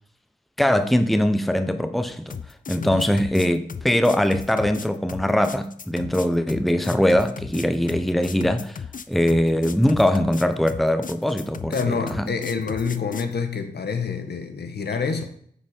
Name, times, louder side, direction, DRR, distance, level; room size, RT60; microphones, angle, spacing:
voice 1, 0.6-2.4 2.7-8.8 9.1-12.3, left 1 dB, ahead, 0.8 m, -21 dB
sound 1, 2.3-13.3, left 6 dB, 50° left, 0.6 m, -36 dB
voice 2, 11.7-15.2, left 5 dB, 65° left, 1.3 m, -27 dB
8.9 x 5.0 x 5.2 m
cardioid pair, 45°, 18 cm